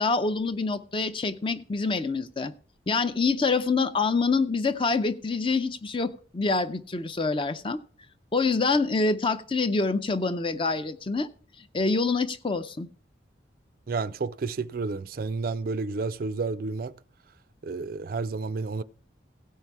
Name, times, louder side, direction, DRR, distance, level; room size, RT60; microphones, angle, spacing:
voice 1, 0.0-2.5 2.9-7.8 8.3-11.3 11.7-12.9, left 3 dB, 25° left, 0.5 m, -26 dB
voice 2, 13.9-16.9 17.6-18.8, right 4 dB, 50° right, 0.4 m, -31 dB
16.5 x 5.5 x 4.7 m
head